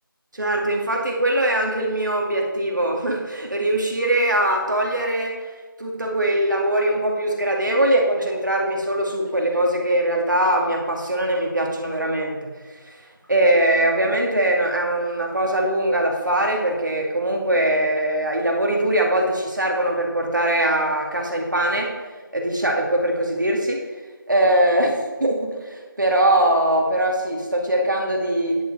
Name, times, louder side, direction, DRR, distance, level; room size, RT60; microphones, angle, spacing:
voice 1, 0.3-5.4 5.8-22.0 22.3-23.8 24.3-28.6, right 1 dB, 55° right, 0 dB, 2.3 m, -22 dB
10.5 x 10.0 x 4.2 m, 1.4 s
figure-of-eight pair, 175°, 12 cm